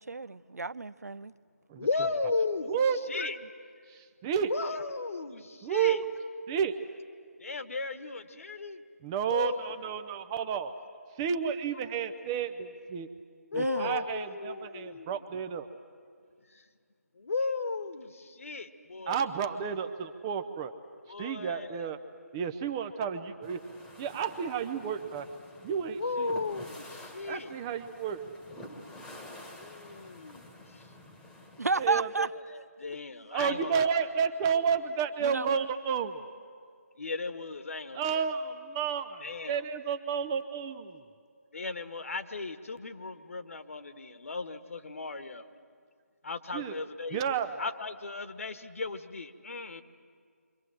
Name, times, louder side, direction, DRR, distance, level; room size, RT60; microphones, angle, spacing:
voice 1, 0.0-1.3 13.6-14.0 31.6-32.3 35.2-35.6, right 3 dB, 75° right, 18 dB, 0.6 m, -32 dB
voice 2, 1.7-2.7 3.1-3.4 4.5-6.0 7.4-8.8 9.3-9.6 13.5-15.2 16.5-16.6 17.2-19.2 21.1-21.9 25.9-27.5 29.6-30.4 32.5-33.9 37.0-38.3 39.2-39.6 41.5-45.5 46.2-47.2 47.6-49.8, left 3 dB, 55° left, 10 dB, 1.5 m, -35 dB
voice 3, 3.9-4.5 5.6-6.1 6.5-6.8 9.0-10.7 11.2-13.1 13.5-15.7 19.1-20.7 21.2-22.0 22.3-23.6 24.0-25.3 25.6-26.3 27.3-28.2 31.8-32.3 33.3-36.2 37.9-41.1 46.5-46.7 47.1-47.5, right 7 dB, 15° right, 9 dB, 0.6 m, -31 dB
sound 1, 23.4-31.9, left 1 dB, 5° left, 1.5 m, -49 dB
28.0 x 24.5 x 7.6 m, 2.1 s
figure-of-eight pair, 155°, 9 cm